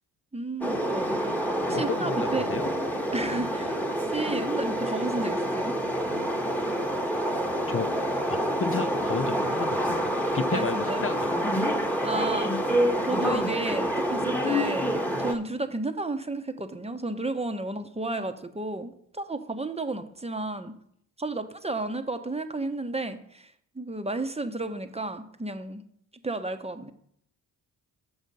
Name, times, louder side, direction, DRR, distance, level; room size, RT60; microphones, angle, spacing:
voice 1, 0.3-1.3 1.7-2.5 3.1-5.7 10.5-11.1 12.0-20.7 21.2-25.8 26.2-26.9, right 2 dB, 15° right, 8 dB, 1.0 m, -32 dB
sound 1, 0.6-15.3, equal, 5° left, 1.3 m, -27 dB
sound 2, 1.0-8.4, right 11 dB, 65° right, 1.0 m, -45 dB
voice 2, 1.7-2.7 7.7-7.9 8.3-11.6, left 5 dB, 30° left, 10 dB, 0.7 m, -33 dB
6.4 x 6.3 x 5.3 m, 0.67 s
hypercardioid pair, 45°, 45 cm